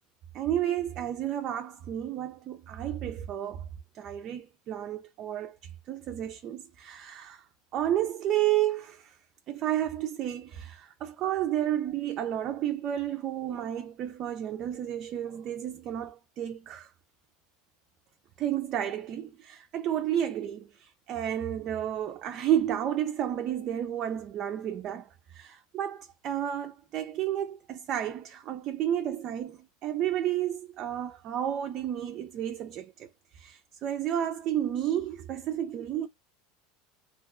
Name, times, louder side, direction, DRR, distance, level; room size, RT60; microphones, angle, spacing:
voice 1, 0.3-3.6 3.9-7.4 7.7-9.1 9.5-16.9 18.4-33.1 33.3-36.1, right 11 dB, 30° right, 0.3 m, -31 dB
2.7 x 2.1 x 3.6 m
supercardioid pair, 180°, 0 cm